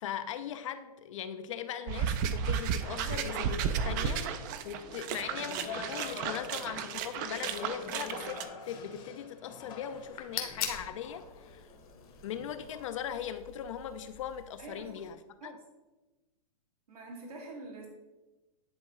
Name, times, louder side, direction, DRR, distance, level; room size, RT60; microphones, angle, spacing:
voice 1, 0.0-11.7 12.2-15.5, left 9 dB, 55° left, 10 dB, 0.4 m, -40 dB
sound 1, 1.9-8.4, right 7 dB, 30° right, 0.4 m, -33 dB
sound 2, 2.9-12.9, left 4 dB, 25° left, 0.8 m, -46 dB
sound 3, 9.9-15.1, left 7 dB, 75° left, 1.3 m, -43 dB
voice 2, 14.6-14.9 15.4-15.5 16.9-17.9, right 2 dB, 85° right, -3 dB, 1.9 m, -45 dB
10.5 x 3.6 x 3.0 m, 1.1 s
hypercardioid pair, 145°, 19 cm